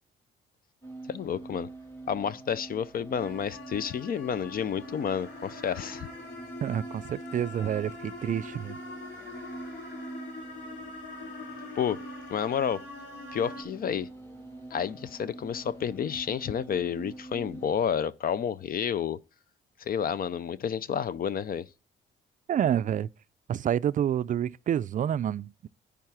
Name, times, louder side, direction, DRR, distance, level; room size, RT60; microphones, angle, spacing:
sound 1, 0.8-17.7, right 2 dB, 10° left, 2.3 m, -45 dB
voice 1, 1.1-1.7 2.1-6.1 11.8-12.0 12.3-12.8 13.3-14.1 14.7-19.2 19.8-21.7, left 8 dB, 45° left, 0.5 m, -30 dB
sound 2, 3.2-13.6, left 3 dB, 65° left, 2.6 m, -44 dB
voice 2, 6.6-8.8 22.5-23.1 23.5-25.7, right 9 dB, 40° right, 0.4 m, -28 dB
10.5 x 3.5 x 5.9 m
cardioid pair, 90°, 20 cm